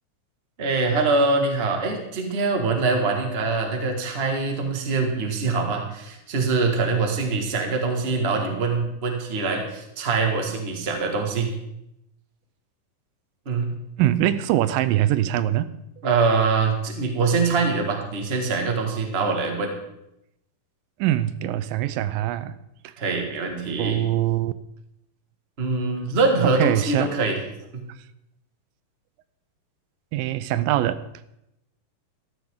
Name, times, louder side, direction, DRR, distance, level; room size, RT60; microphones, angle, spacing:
voice 1, 0.6-11.5 13.4-13.7 16.0-19.7 23.0-24.0 25.6-27.4 27.7-27.8, right 4 dB, 30° right, 3 dB, 1.3 m, -24 dB
voice 2, 14.0-15.7 21.0-22.6 22.8-22.9 23.7-24.5 26.6-27.2 30.1-31.1, right 13 dB, 90° right, 14 dB, 2.3 m, -23 dB
14.0 x 13.0 x 3.8 m, 0.84 s
omnidirectional pair, 3.9 m